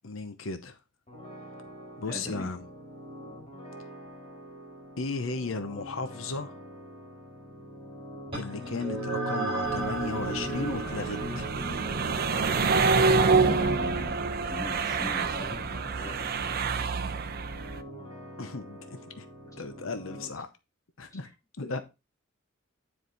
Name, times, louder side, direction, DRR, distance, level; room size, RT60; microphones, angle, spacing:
voice 1, 0.0-0.8 2.0-2.6 5.0-6.6 8.3-11.5 18.4-19.3 19.6-20.5 21.0-21.3 21.6-21.8, left 3 dB, 85° left, 0.9 m, -35 dB
sound 1, 1.1-20.3, equal, 30° left, 3.4 m, -46 dB
voice 2, 2.1-2.5 13.2-16.7 21.1-21.2, left 2 dB, 15° left, 2.6 m, -40 dB
sound 2, 8.3-17.2, right 2 dB, 30° right, 5.3 m, -36 dB
sound 3, 9.7-17.8, right 4 dB, 50° right, 0.7 m, -27 dB
9.7 x 4.9 x 4.1 m
head